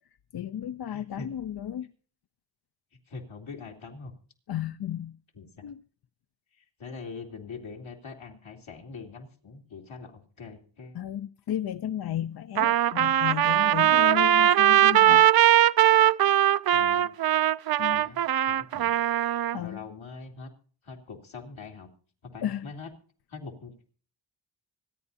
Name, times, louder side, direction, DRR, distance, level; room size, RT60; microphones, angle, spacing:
voice 1, 0.3-1.9 4.5-5.2 5.6-5.8 10.9-15.3 17.8-18.0 19.5-19.8 22.4-22.7, left 11 dB, 55° left, 0.6 m, -33 dB
voice 2, 0.9-1.3 3.1-4.1 5.3-5.6 6.6-11.0 16.7-17.1 17.9-18.2 18.5-18.9 19.6-20.5 20.8-21.9 22.2-22.9 23.3-23.9, left 4 dB, 75° left, 2.8 m, -43 dB
Trumpet, 12.6-19.6, right 12 dB, 50° right, 0.5 m, -20 dB
25.5 x 9.7 x 2.7 m
cardioid pair, 55°, 47 cm